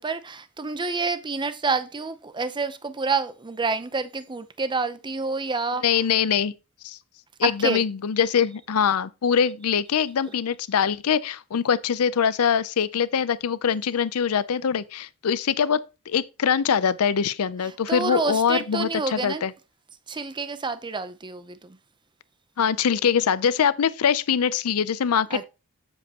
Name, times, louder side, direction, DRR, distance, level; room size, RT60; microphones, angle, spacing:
voice 1, 0.0-6.0 7.4-7.8 17.6-19.4 20.1-21.8 25.3-25.4, right 4 dB, 20° right, 0.6 m, -28 dB
voice 2, 5.8-6.5 6.8-7.0 7.4-15.8 16.1-19.5 22.6-25.4, left 7 dB, 80° left, 0.5 m, -23 dB
7.6 x 7.3 x 2.9 m
head